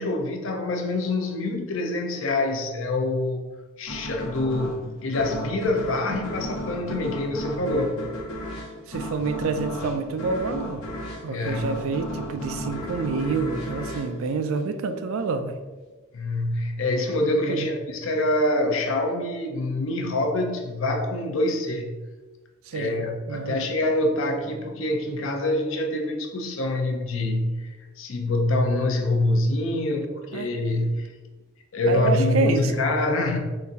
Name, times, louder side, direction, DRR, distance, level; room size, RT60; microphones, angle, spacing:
voice 1, 0.0-3.5 3.8-8.0 11.3-11.7 16.1-21.9 22.7-31.1 31.7-33.4, left 2 dB, 60° left, 3 dB, 0.6 m, -25 dB
sound 1, 3.9-15.1, equal, 80° left, 1.0 m, -35 dB
voice 2, 8.9-10.9 11.2-15.6 17.4-17.7 22.7-23.0 23.3-23.6 30.3-30.5 31.9-32.7, right 4 dB, 65° right, 8 dB, 0.4 m, -28 dB
3.9 x 2.6 x 4.0 m, 1.3 s
head